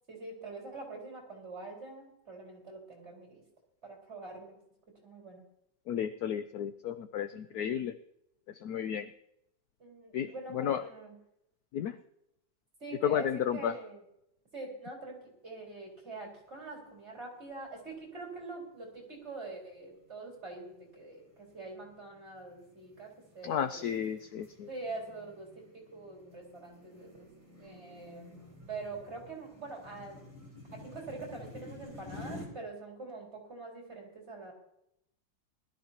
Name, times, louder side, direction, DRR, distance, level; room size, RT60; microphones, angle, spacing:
voice 1, 0.1-3.4 3.8-4.6 5.0-5.4 7.3-7.8 9.8-11.1 12.8-14.0 14.5-24.1 24.7-25.5 25.9-27.3 27.6-28.4 28.7-30.2 30.8-34.5, right 3 dB, 35° right, -1 dB, 4.7 m, -44 dB
voice 2, 5.9-7.9 8.6-9.1 10.1-10.8 11.7-12.0 13.0-13.7 23.4-24.7, left 9 dB, 70° left, 10 dB, 0.9 m, -32 dB
sound 1, 16.0-16.5 16.9-17.0 17.7-18.2 18.7-19.0 19.6-32.5, left 2 dB, 5° left, 4.4 m, -51 dB
20.5 x 13.0 x 2.9 m, 0.79 s
omnidirectional pair, 2.0 m